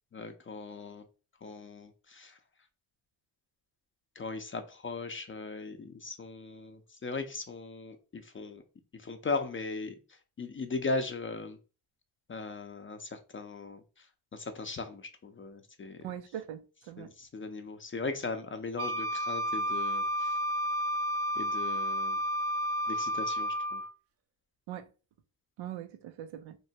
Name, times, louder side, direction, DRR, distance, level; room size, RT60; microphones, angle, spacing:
voice 1, 0.1-1.0 1.4-2.4 4.2-8.6 8.9-10.0 10.4-11.6 12.3-14.1 14.3-16.1 17.0-20.3 21.4-22.2 22.9-23.8, left 3 dB, 30° left, 0.5 m, -38 dB
voice 2, 16.0-17.1 24.7-24.9 25.6-26.6, right 11 dB, 90° right, 0.5 m, -41 dB
Wind instrument woodwind instrument, 18.8-23.9, equal, 35° right, 0.4 m, -31 dB
3.0 x 2.1 x 2.7 m
supercardioid pair, 55°, 45 cm